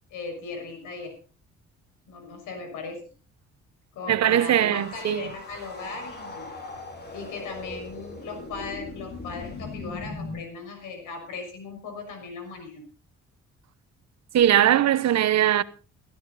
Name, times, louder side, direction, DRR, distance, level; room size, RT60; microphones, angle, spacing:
voice 1, 0.1-1.1 2.1-3.0 3.9-6.5 7.1-12.9, left 4 dB, 90° left, 6.2 m, -38 dB
voice 2, 4.1-5.3 14.3-15.6, right 11 dB, 65° right, 1.0 m, -20 dB
sound 1, 4.7-10.4, left 3 dB, 35° left, 4.3 m, -39 dB
16.5 x 14.0 x 4.1 m
cardioid pair, 90°, 30 cm